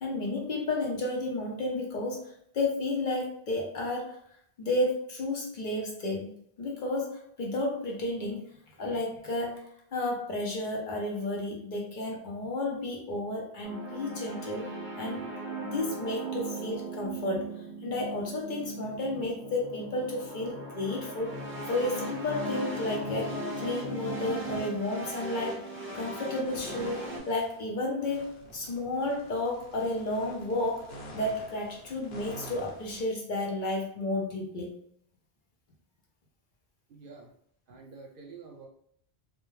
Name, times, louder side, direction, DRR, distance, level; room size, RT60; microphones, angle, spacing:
voice 1, 0.0-4.2 4.6-14.7 15.0-15.3 15.6-21.4 21.6-25.6 25.9-34.8, left 2 dB, 55° left, -1 dB, 0.7 m, -32 dB
sound 1, 13.6-27.2, right 1 dB, 20° right, 0.4 m, -38 dB
sound 2, 26.4-27.6 28.0-33.0, right 1 dB, 75° left, 1.0 m, -48 dB
voice 2, 36.9-37.3 37.7-38.7, right 4 dB, 65° right, 1 dB, 0.7 m, -48 dB
2.2 x 2.1 x 3.0 m, 0.67 s
omnidirectional pair, 1.1 m